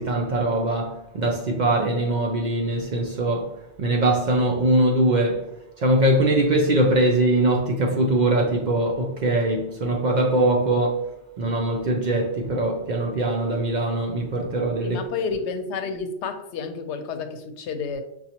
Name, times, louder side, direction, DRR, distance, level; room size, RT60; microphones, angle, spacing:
voice 1, 0.0-5.5 5.8-11.1 11.4-15.0, right 1 dB, 55° right, 0.5 m, -22 dB
voice 2, 14.8-18.0, left 5 dB, 90° left, 0.9 m, -30 dB
5.8 x 2.3 x 2.8 m
omnidirectional pair, 1.1 m